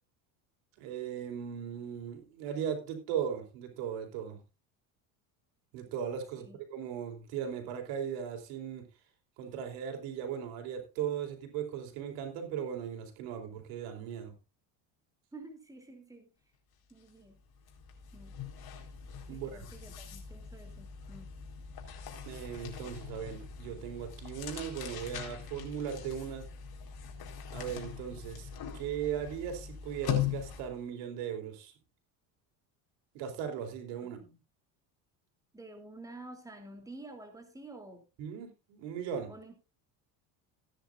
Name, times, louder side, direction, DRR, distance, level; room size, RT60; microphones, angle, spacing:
voice 1, 0.8-4.4 5.7-8.9 9.4-14.3 19.3-19.7 22.2-26.5 27.5-31.7 33.1-34.2 38.2-39.3, right 8 dB, 85° right, 4.3 m, -38 dB
voice 2, 15.3-16.3 16.9-17.4 18.1-18.3 19.3-21.3 34.2-34.4 35.5-38.0 39.3-39.6, right 2 dB, 5° right, 3.0 m, -49 dB
sound 1, 16.9-17.1 17.4-30.8, left 9 dB, 50° left, 4.3 m, -41 dB
17.0 x 10.0 x 2.5 m
cardioid pair, 115°, 46 cm